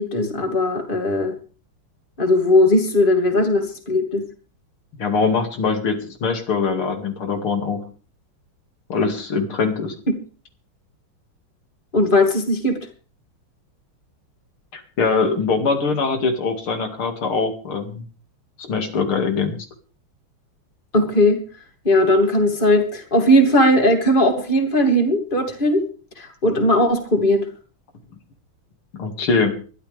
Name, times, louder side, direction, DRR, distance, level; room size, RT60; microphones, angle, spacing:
voice 1, 0.0-1.3 2.2-4.2 11.9-12.8 20.9-21.4 21.8-25.8 26.2-27.5, left 1 dB, 25° left, 3 dB, 2.9 m, -18 dB
voice 2, 5.0-7.8 8.9-9.9 14.7-18.0 18.7-19.6 29.0-29.5, left 4 dB, 85° left, 5 dB, 3.3 m, -22 dB
22.0 x 13.0 x 3.5 m, 0.37 s
omnidirectional pair, 2.3 m